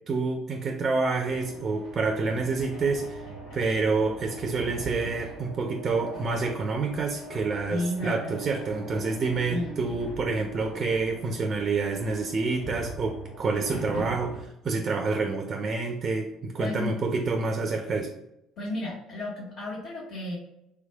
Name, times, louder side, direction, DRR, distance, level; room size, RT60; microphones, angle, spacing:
voice 1, 0.1-3.2 3.5-18.1, right 4 dB, 40° right, 5 dB, 0.4 m, -28 dB
sound 1, 1.2-14.4, right 2 dB, 80° left, 1.0 m, -41 dB
voice 2, 7.7-8.4 9.5-9.7 16.6-16.9 18.6-20.3, left 1 dB, 65° left, -8 dB, 1.2 m, -32 dB
3.2 x 3.1 x 2.2 m, 0.85 s
hypercardioid pair, 65°, 0 cm